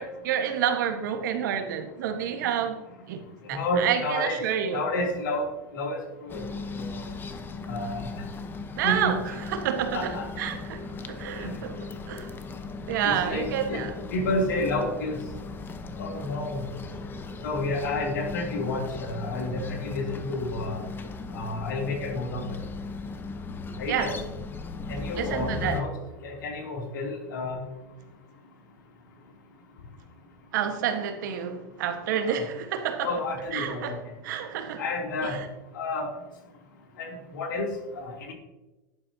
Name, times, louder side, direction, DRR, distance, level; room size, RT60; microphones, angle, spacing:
voice 1, 0.0-2.8 3.1-3.2 3.5-4.8 8.8-11.7 12.1-12.3 12.9-13.9 23.9-24.1 25.1-25.8 30.5-33.1 33.5-34.0 34.2-34.8 35.2-35.5, right 9 dB, 70° right, 1.4 m, -29 dB
voice 2, 3.4-4.4 4.7-5.4 5.7-6.0 6.2-6.4 6.8-6.9 7.7-8.2 8.8-9.1 9.9-10.4 11.4-11.5 13.0-13.8 14.1-15.2 16.0-16.6 17.4-20.8 21.3-22.4 23.8-24.2 24.9-25.9 26.2-27.6 32.3-32.4 33.0-33.9 34.8-35.3 35.7-36.1 37.0-37.7 38.0-38.3, left 2 dB, 80° left, 3.0 m, -30 dB
sound 1, 6.3-25.8, left 3 dB, 20° left, 0.9 m, -38 dB
12.0 x 10.5 x 2.8 m
hypercardioid pair, 110°, 10 cm